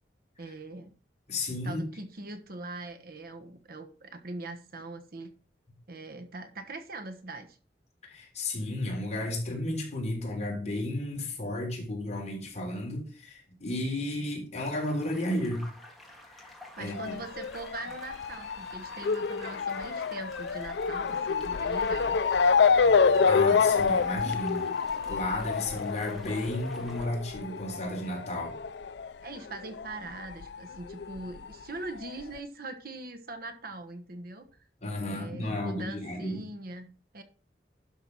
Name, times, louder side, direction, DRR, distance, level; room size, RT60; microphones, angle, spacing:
voice 1, 0.4-0.9 1.6-5.3 5.9-7.6 16.8-22.2 22.8-22.9 29.2-34.5 35.1-36.9 37.1-37.2, right 2 dB, 55° right, 9 dB, 1.2 m, -41 dB
voice 2, 1.3-1.8 8.1-15.6 16.4-16.5 16.8-17.2 23.0-24.7 25.0-28.6 34.8-36.4, left 1 dB, 40° left, 0 dB, 3.7 m, -33 dB
sound 1, 14.6-27.1, left 1 dB, ahead, 2.5 m, -50 dB
Motor vehicle (road) / Siren, 16.9-29.9 30.2-31.4 32.0-32.1 32.4-32.5, left 5 dB, 75° left, 0.5 m, -27 dB
11.5 x 4.5 x 6.0 m, 0.38 s
head